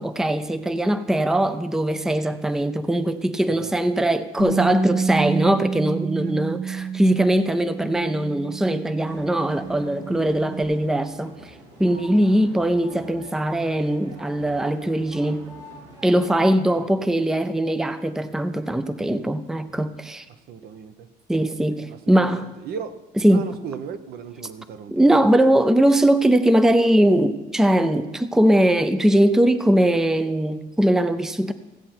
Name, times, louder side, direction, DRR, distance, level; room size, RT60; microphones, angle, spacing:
voice 1, 0.0-11.5 11.8-15.5 16.0-20.3 21.3-22.5 23.2-23.5 24.9-31.5, right 1 dB, 5° right, 0.5 m, -20 dB
Bass guitar, 4.4-10.6, right 7 dB, 40° right, 1.5 m, -29 dB
sound 1, 9.0-16.1, equal, 85° right, 3.0 m, -45 dB
voice 2, 20.3-21.1 21.9-23.0 23.3-25.3, right 7 dB, 65° right, 0.8 m, -37 dB
16.0 x 7.7 x 4.4 m
cardioid pair, 110°, 17 cm